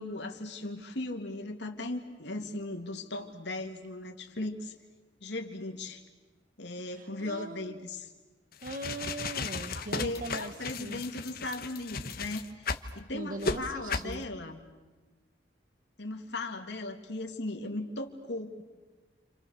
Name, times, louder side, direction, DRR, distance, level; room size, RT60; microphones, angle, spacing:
voice 1, 0.0-4.7 5.2-6.0 6.6-8.1 9.7-12.7 12.9-14.6 16.0-18.6, left 2 dB, 70° left, 3 dB, 2.7 m, -37 dB
voice 2, 6.9-7.9 8.6-10.5 10.8-11.0 13.1-14.2, right 2 dB, 45° right, 10 dB, 1.2 m, -40 dB
sound 1, 8.5-12.9 13.4-13.6 13.9-14.1, left 4 dB, 50° left, 1.3 m, -35 dB
30.0 x 27.5 x 6.6 m, 1.3 s
head